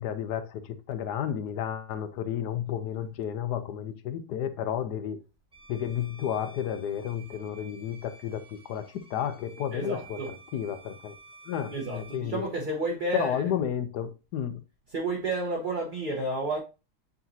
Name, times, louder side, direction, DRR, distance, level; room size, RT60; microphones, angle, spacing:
voice 1, 0.0-5.2 5.7-11.2 11.4-12.4 13.1-14.6, left 9 dB, 85° left, 1.3 m, -32 dB
Bowed string instrument, 5.5-12.3, right 3 dB, 5° right, 0.9 m, -52 dB
voice 2, 9.7-10.3 11.7-13.4 14.9-16.6, right 2 dB, 35° right, 1.1 m, -31 dB
8.4 x 4.1 x 2.7 m
omnidirectional pair, 1.7 m